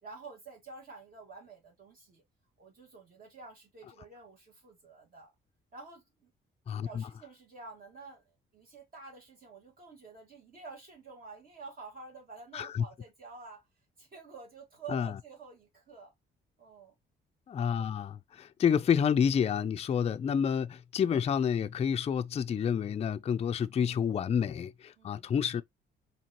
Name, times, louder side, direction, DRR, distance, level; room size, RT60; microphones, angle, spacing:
voice 1, 0.0-2.2 2.6-5.3 5.7-6.3 6.8-13.7 14.0-16.1 16.6-16.9 25.0-25.3, right 4 dB, 45° right, 2.0 m, -49 dB
voice 2, 6.7-7.1 12.5-12.8 14.9-15.2 17.5-25.6, left 7 dB, 30° left, 0.4 m, -29 dB
4.5 x 2.9 x 2.9 m
cardioid pair, 90°, 20 cm